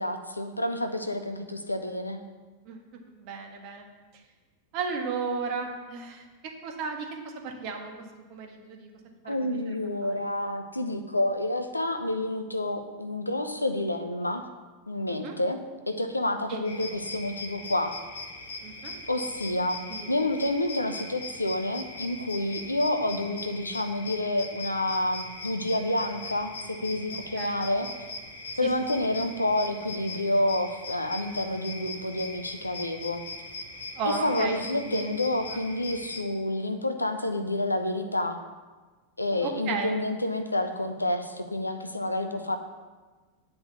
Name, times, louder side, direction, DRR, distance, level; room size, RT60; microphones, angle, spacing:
voice 1, 0.0-2.2 9.2-14.4 14.9-15.6 15.9-17.9 19.1-19.8 20.1-27.9 28.6-33.2 34.1-38.4 39.2-42.6, left 1 dB, 85° left, 7 dB, 0.8 m, -29 dB
voice 2, 3.2-3.9 4.7-7.9 8.3-8.9 9.2-9.4 9.7-9.8 10.0-10.1 15.1-15.4 16.5-16.6 18.6-18.9 19.9-20.3 27.3-27.7 34.0-35.1 39.4-39.9, right 5 dB, 45° right, 2 dB, 1.7 m, -34 dB
sound 1, 16.6-36.2, left 3 dB, 65° left, 1.5 m, -40 dB
9.8 x 5.3 x 7.0 m, 1.3 s
figure-of-eight pair, 90°, 0 cm